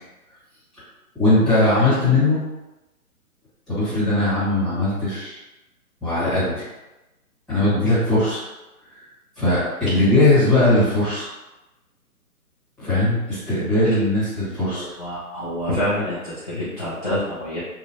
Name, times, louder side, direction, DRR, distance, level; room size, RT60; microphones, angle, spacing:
voice 1, 1.1-2.4 3.7-5.4 6.0-6.7 7.5-8.4 9.4-11.2 12.8-14.9, left 2 dB, ahead, -15 dB, 1.0 m, -19 dB
voice 2, 14.7-17.6, equal, 30° left, -11 dB, 0.4 m, -27 dB
3.0 x 2.3 x 2.7 m, 1.0 s
figure-of-eight pair, 145°, 46 cm